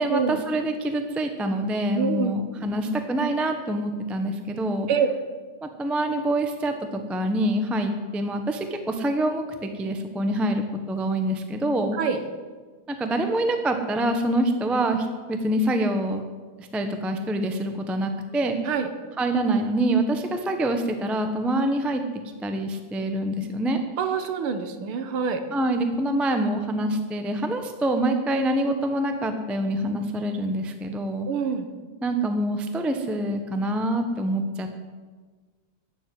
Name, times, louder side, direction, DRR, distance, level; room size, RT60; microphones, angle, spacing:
voice 1, 0.0-4.9 5.6-12.0 12.9-16.2 16.6-18.6 19.2-22.0 22.4-23.8 25.5-31.3 32.0-34.7, right 1 dB, ahead, 6 dB, 0.5 m, -26 dB
voice 2, 1.9-2.4 4.9-5.1 12.0-12.2 18.7-18.9 24.0-25.4 31.3-31.7, right 6 dB, 75° right, 8 dB, 2.0 m, -25 dB
12.0 x 7.5 x 9.5 m, 1.4 s
omnidirectional pair, 2.4 m